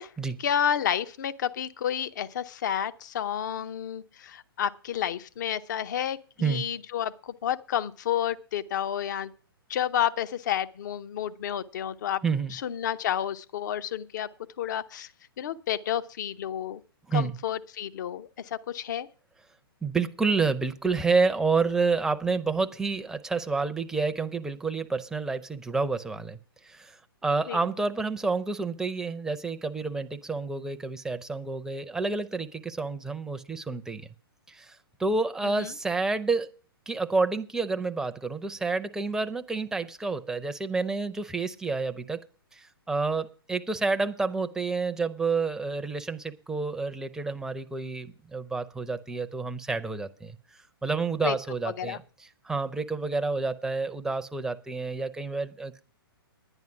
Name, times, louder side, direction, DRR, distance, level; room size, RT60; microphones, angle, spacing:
voice 1, 0.4-9.3 9.7-12.2 12.5-14.3 14.6-15.1 15.4-16.8 17.1-19.1 27.5-27.6 35.4-35.7 51.2-51.4 51.8-52.0, left 10 dB, 50° left, 0.7 m, -30 dB
voice 2, 12.2-12.5 17.1-17.4 19.8-26.4 26.6-27.0 27.2-34.1 34.5-36.5 36.9-42.2 42.5-50.4 50.8-52.0 52.4-55.8, right 4 dB, 5° right, 0.6 m, -29 dB
10.5 x 9.9 x 5.9 m
figure-of-eight pair, 120°, 13 cm